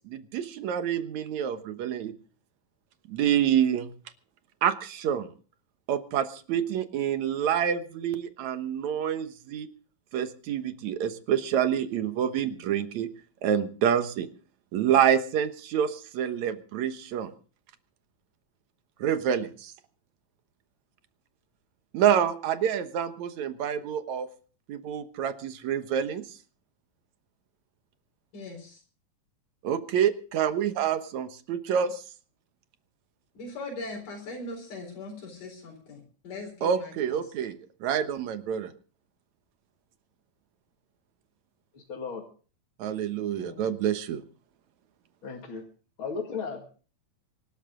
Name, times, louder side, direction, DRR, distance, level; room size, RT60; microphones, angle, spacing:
voice 1, 0.1-2.1 3.1-3.9 4.6-5.3 5.9-9.7 10.1-13.1 13.4-14.3 14.7-17.3 19.0-19.7 21.9-24.3 24.7-26.2 29.6-32.0 36.6-38.7 42.8-44.2, right 9 dB, 65° right, 10 dB, 2.4 m, -27 dB
voice 2, 28.3-28.8 33.3-37.3 43.4-43.8, left 2 dB, 80° left, 0 dB, 5.9 m, -40 dB
voice 3, 41.7-42.2 45.2-45.6 46.0-46.7, left 5 dB, 45° left, 1 dB, 2.7 m, -35 dB
24.5 x 13.0 x 3.8 m, 0.40 s
omnidirectional pair, 3.7 m